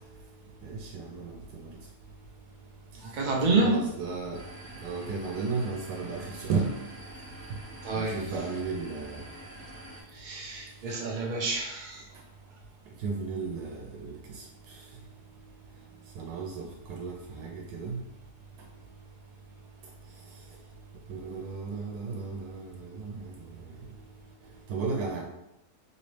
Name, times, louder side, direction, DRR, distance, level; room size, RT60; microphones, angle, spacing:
voice 1, 0.6-1.7 3.6-4.4 4.8-6.7 7.9-9.2 13.0-14.4 16.2-18.0 21.1-23.2 24.7-25.2, right 4 dB, 90° right, 0 dB, 1.1 m, -34 dB
voice 2, 2.9-3.8 7.8-8.2 10.1-12.1, right 3 dB, 75° right, -1 dB, 0.4 m, -28 dB
sound 1, 4.3-10.0, right 1 dB, 35° right, 0.8 m, -47 dB
3.0 x 2.9 x 3.2 m, 0.88 s
omnidirectional pair, 1.6 m